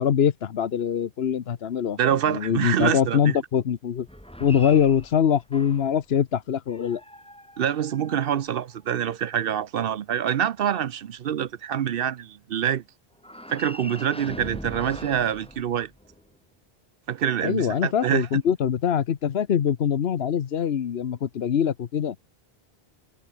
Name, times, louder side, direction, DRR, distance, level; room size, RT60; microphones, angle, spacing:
voice 1, 0.0-4.1 4.4-7.0 17.4-22.2, left 8 dB, 75° left, 1.1 m, -23 dB
voice 2, 2.0-3.4 7.6-12.8 13.5-15.9 17.1-18.3, right 9 dB, 65° right, 0.8 m, -26 dB
sound 1, 4.0-6.0 6.7-9.1 13.2-16.3, equal, 5° left, 3.3 m, -42 dB
omnidirectional pair, 1.1 m